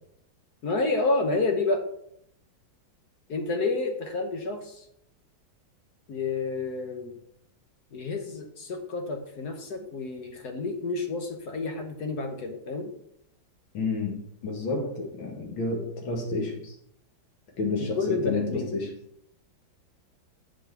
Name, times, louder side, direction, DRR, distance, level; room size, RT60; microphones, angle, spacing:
voice 1, 0.6-1.8 3.3-4.8 6.1-7.2 7.9-12.9 18.0-18.7, left 3 dB, 60° left, 5 dB, 1.3 m, -29 dB
voice 2, 13.7-16.8 17.6-18.9, left 3 dB, 85° left, 2 dB, 2.5 m, -30 dB
7.6 x 4.7 x 5.9 m, 0.73 s
omnidirectional pair, 2.1 m